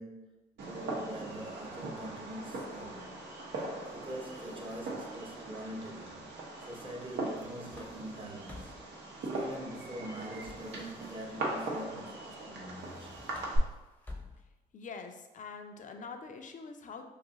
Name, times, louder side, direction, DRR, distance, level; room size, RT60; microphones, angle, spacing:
voice 1, 0.0-3.2 3.5-6.3 6.6-8.7 9.2-13.2, right 1 dB, 30° right, 0 dB, 0.9 m, -44 dB
Fireworks, 0.6-13.6, right 2 dB, 70° right, 0.8 m, -40 dB
sound 1, 3.9-5.1 7.1-9.0 10.4-11.5 12.7-14.7, left 2 dB, 10° left, 0.7 m, -52 dB
voice 2, 14.7-17.0, left 5 dB, 45° left, 6 dB, 0.5 m, -44 dB
2.6 x 2.4 x 3.9 m, 1.0 s
hypercardioid pair, 50°, 18 cm